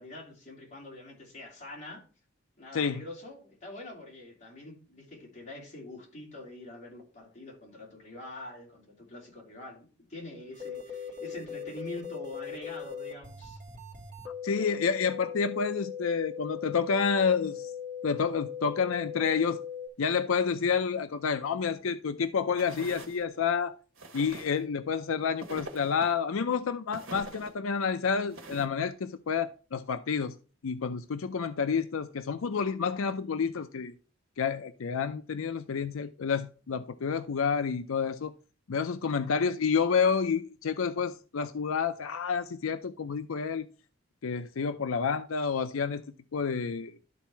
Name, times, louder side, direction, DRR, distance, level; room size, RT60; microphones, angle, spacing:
voice 1, 0.0-2.1 2.6-13.6, left 2 dB, 35° left, 3.4 m, -45 dB
voice 2, 2.7-3.0 14.4-17.7 18.0-19.6 20.0-23.7 24.1-30.3 30.6-33.9 34.4-38.3 38.7-43.7 44.2-46.0 46.3-46.9, left 6 dB, 85° left, 0.5 m, -29 dB
sound 1, 10.5-19.9, left 7 dB, 40° right, 2.4 m, -39 dB
sound 2, 22.6-23.2 24.0-24.6 25.4-26.1 26.9-27.5 28.3-28.6, right 2 dB, 80° right, 1.6 m, -43 dB
12.0 x 4.1 x 4.5 m
head